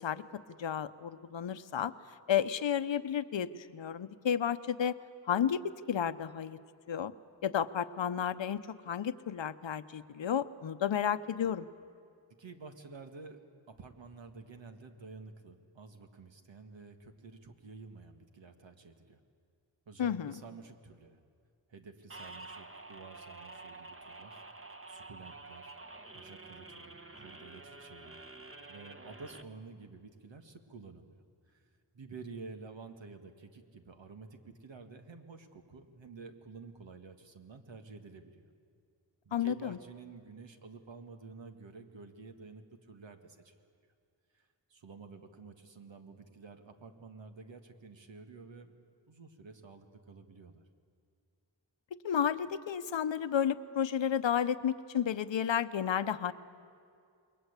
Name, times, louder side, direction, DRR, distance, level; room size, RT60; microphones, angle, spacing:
voice 1, 0.0-5.0 5.3-6.6 6.9-7.1 7.4-11.7 20.0-20.3 39.3-39.8 52.0-56.3, left 8 dB, 85° left, 12 dB, 0.9 m, -32 dB
voice 2, 12.4-13.4 13.7-19.2 19.9-21.2 21.7-24.5 24.9-25.7 26.1-28.2 28.7-38.5 39.2-43.6 44.3-48.7 49.1-50.6, right 4 dB, 85° right, 6 dB, 2.0 m, -51 dB
sound 1, 22.1-29.4, right 3 dB, 30° right, 1.5 m, -49 dB
28.5 x 22.0 x 8.3 m, 2.4 s
wide cardioid pair, 95°, 44 cm